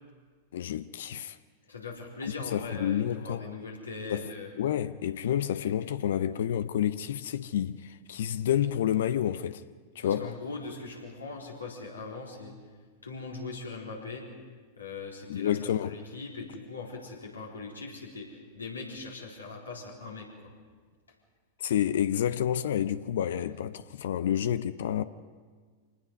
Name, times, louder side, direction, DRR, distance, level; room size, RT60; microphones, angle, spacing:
voice 1, 0.5-1.4 2.5-3.4 4.1-4.3 4.6-9.6 10.0-10.3 15.3-16.0 21.6-25.0, left 10 dB, 65° left, 0.6 m, -29 dB
voice 2, 1.7-4.5 10.0-12.5 13.0-14.2 14.8-20.3, left 3 dB, 85° left, 3.9 m, -40 dB
26.0 x 19.5 x 5.3 m
figure-of-eight pair, 95°, 0 cm